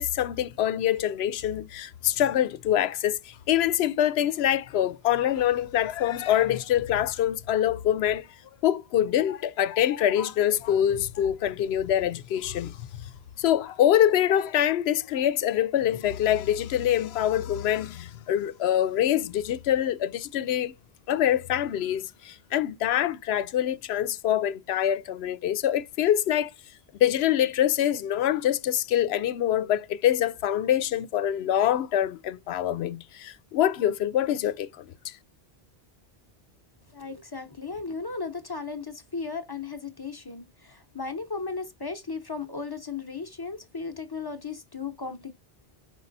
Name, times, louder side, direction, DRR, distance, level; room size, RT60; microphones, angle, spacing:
voice 1, 0.0-8.3 8.6-13.1 13.4-20.7 21.1-26.5 27.0-35.2, left 11 dB, 85° left, 0.8 m, -25 dB
voice 2, 36.9-45.3, left 4 dB, 25° left, 0.7 m, -36 dB
5.3 x 5.2 x 4.0 m
omnidirectional pair, 1.0 m